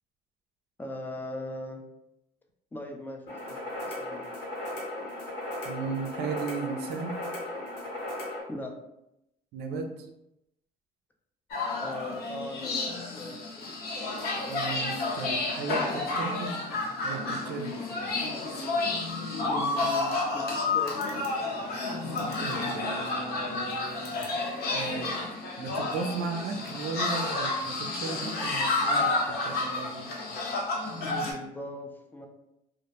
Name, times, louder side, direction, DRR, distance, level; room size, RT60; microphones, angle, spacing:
voice 1, 0.8-1.8 2.7-4.2 8.5-8.7 11.8-13.5 19.5-20.9 31.0-32.3, left 1 dB, 10° left, 2 dB, 0.3 m, -39 dB
sound 1, 3.3-8.4, left 1 dB, 80° left, 1.0 m, -36 dB
voice 2, 5.6-7.2 9.5-9.9 14.5-16.6 17.0-17.7 18.1-18.2 22.0-24.3 24.7-30.1, right 4 dB, 75° right, 4 dB, 0.4 m, -36 dB
sound 2, 11.5-31.3, left 3 dB, 65° left, 0.6 m, -30 dB
2.1 x 2.1 x 2.8 m, 0.85 s
cardioid pair, 110°, 17 cm